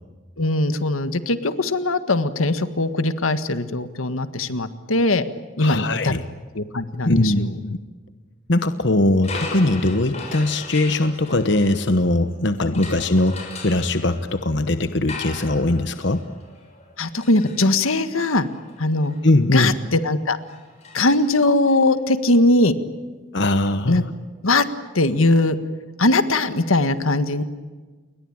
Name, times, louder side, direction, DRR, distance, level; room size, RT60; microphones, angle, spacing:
voice 1, 0.4-5.2 5.6-6.1 6.6-7.5 12.7-12.8 17.0-18.5 18.8-19.2 19.5-20.4 20.9-22.7 23.9-24.0 24.4-24.6 24.9-25.6 26.0-27.4, left 2 dB, 85° left, 11 dB, 1.7 m, -20 dB
voice 2, 5.6-6.2 7.0-7.8 8.5-16.2 19.2-19.8 23.3-24.1, left 2 dB, 55° left, 10 dB, 1.1 m, -20 dB
sound 1, 9.2-12.3 12.7-21.8, left 3 dB, 30° left, 6.5 m, -39 dB
29.5 x 22.0 x 8.9 m, 1.4 s
head